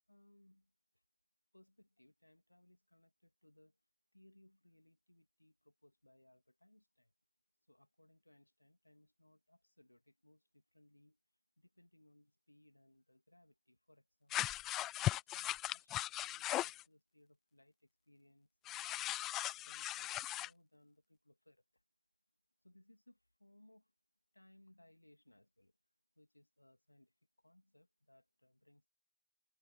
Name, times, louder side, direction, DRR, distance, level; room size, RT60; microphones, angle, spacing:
voice 1, 0.1-1.0 1.5-3.8 4.1-7.1 7.7-11.2 11.6-19.0 19.6-21.8 22.6-23.9 24.3-25.7 26.2-28.9, left 1 dB, 85° left, 2.6 m, -68 dB
sound 1, 14.3-16.8 18.6-20.5, left 15 dB, 35° left, 0.3 m, -38 dB
figure-of-eight pair, 90°, 0 cm